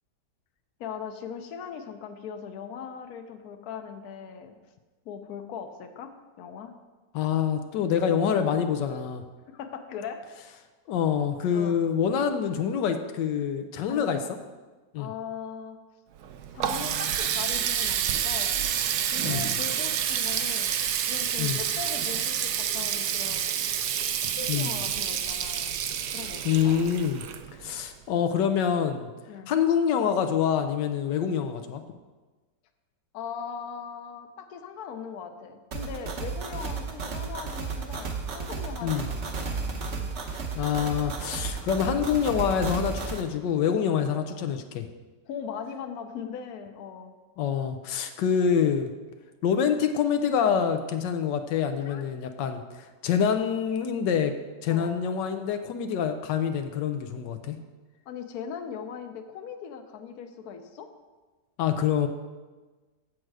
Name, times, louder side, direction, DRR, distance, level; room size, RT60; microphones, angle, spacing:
voice 1, 0.8-4.6 5.0-6.1 6.4-6.7 9.5-10.2 11.5-11.8 13.9-14.2 15.0-15.8 16.5-18.7 19.0-20.7 21.1-23.6 24.4-25.8 26.1-26.8 29.3-29.6 33.1-39.4 40.0-40.2 45.3-47.1 51.8-52.0 54.7-55.0 58.1-60.9, left 7 dB, 65° left, 7 dB, 1.1 m, -39 dB
voice 2, 7.1-9.2 10.9-14.2 14.9-15.1 19.2-19.6 21.4-21.6 24.5-24.8 26.4-27.2 27.6-29.1 29.5-31.8 38.8-39.1 40.6-44.9 47.4-48.9 49.4-54.3 54.6-57.6 61.6-62.1, left 8 dB, 85° left, 7 dB, 1.3 m, -26 dB
Water tap faucet, 16.2-27.8, right 9 dB, 70° right, 1.1 m, -29 dB
sound 1, 35.7-43.2, right 4 dB, 50° right, 1.0 m, -33 dB
7.9 x 7.5 x 4.7 m, 1.3 s
omnidirectional pair, 1.9 m